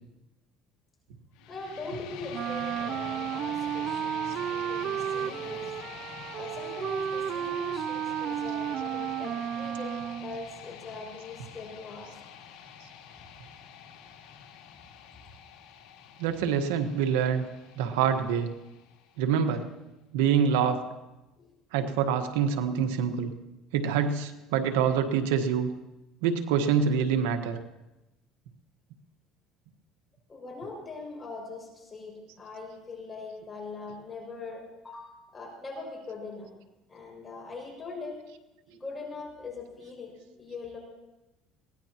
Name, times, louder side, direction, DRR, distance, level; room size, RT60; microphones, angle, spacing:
sound 1, 1.3-19.4, left 8 dB, 75° left, 2.2 m, -46 dB
voice 1, 1.5-5.6 6.3-12.2 21.4-21.5 30.3-36.5 36.9-38.2 38.7-40.8, left 3 dB, 20° left, -1 dB, 6.2 m, -41 dB
Wind instrument woodwind instrument, 2.3-10.4, right 10 dB, 55° right, 0.5 m, -33 dB
voice 2, 16.2-17.4 17.8-18.5 19.2-19.6 20.1-20.8 21.7-23.3 23.7-25.7 26.2-27.6, right 7 dB, 90° right, 7 dB, 1.3 m, -26 dB
23.0 x 17.5 x 3.0 m, 1.0 s
supercardioid pair, 110°, 0 cm